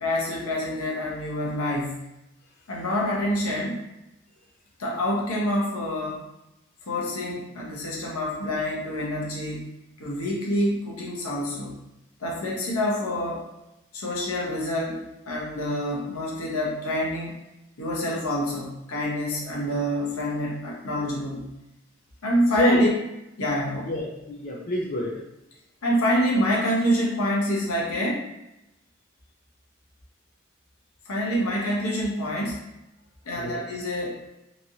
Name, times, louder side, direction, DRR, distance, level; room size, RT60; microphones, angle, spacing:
voice 1, 0.0-2.0 2.7-3.8 4.8-6.2 6.9-9.7 10.0-11.8 12.2-13.5 13.9-17.3 17.8-21.5 22.2-22.9 23.4-23.8 25.8-28.3 31.1-32.6 33.3-34.2, equal, 85° left, -3 dB, 0.8 m, -26 dB
voice 2, 22.5-22.9 23.8-25.2 31.6-31.7 33.3-33.7, left 1 dB, 40° left, -2 dB, 0.4 m, -28 dB
3.0 x 2.5 x 2.7 m, 0.91 s
head